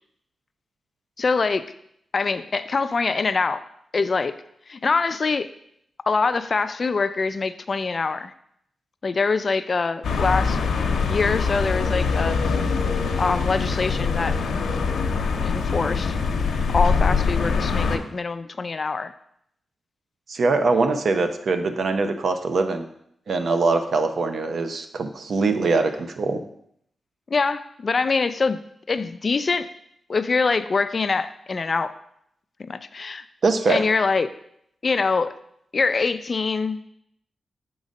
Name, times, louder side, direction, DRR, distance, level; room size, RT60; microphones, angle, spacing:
voice 1, 1.2-1.6 2.1-3.6 3.9-4.4 4.7-5.5 6.1-8.3 9.0-10.6 11.1-12.4 13.2-14.4 15.4-16.2 16.7-19.1 27.3-28.6 28.9-29.7 30.1-31.9 32.7-33.2 33.7-34.3 34.8-35.4 35.7-36.8, left 4 dB, 40° left, 12 dB, 0.3 m, -24 dB
sound 1, 10.0-18.0, left 5 dB, 85° left, 0.7 m, -23 dB
voice 2, 20.3-22.9 23.3-26.4 33.4-33.8, right 3 dB, 60° right, 8 dB, 0.6 m, -22 dB
7.2 x 3.9 x 5.2 m, 0.72 s
wide cardioid pair, 110°, 0 cm